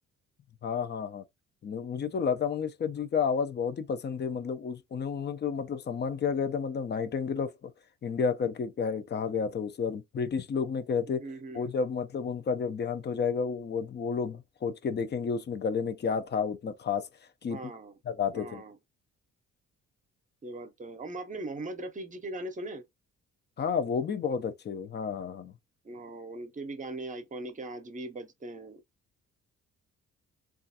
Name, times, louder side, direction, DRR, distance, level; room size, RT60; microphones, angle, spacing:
voice 1, 0.6-1.2 1.6-7.7 8.0-11.2 11.5-17.1 17.4-17.6 18.1-18.6 23.6-25.5, left 6 dB, 35° left, 0.5 m, -31 dB
voice 2, 11.2-11.7 17.5-18.0 18.3-18.8 20.4-22.8 25.8-28.8, right 2 dB, 25° right, 0.7 m, -40 dB
3.1 x 2.4 x 2.7 m
cardioid pair, 90°, 30 cm